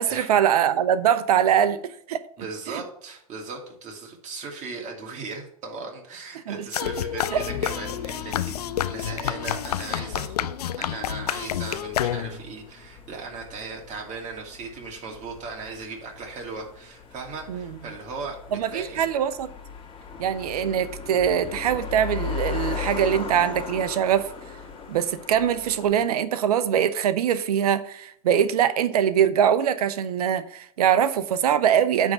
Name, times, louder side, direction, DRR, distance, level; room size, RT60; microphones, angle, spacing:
voice 1, 0.0-2.2 2.7-2.8 6.5-6.6 7.3-7.4 17.5-17.7 18.5-19.5 20.2-24.3 24.9-32.1, right 9 dB, 80° right, 0.7 m, -22 dB
voice 2, 2.4-10.5 10.8-19.1 23.4-23.5, right 4 dB, 40° right, 2.5 m, -37 dB
sound 1, 6.7-12.5, left 11 dB, 85° left, 0.5 m, -29 dB
sound 2, 7.3-26.0, left 6 dB, 25° left, 1.7 m, -38 dB
9.5 x 3.6 x 6.8 m
hypercardioid pair, 110°, 19 cm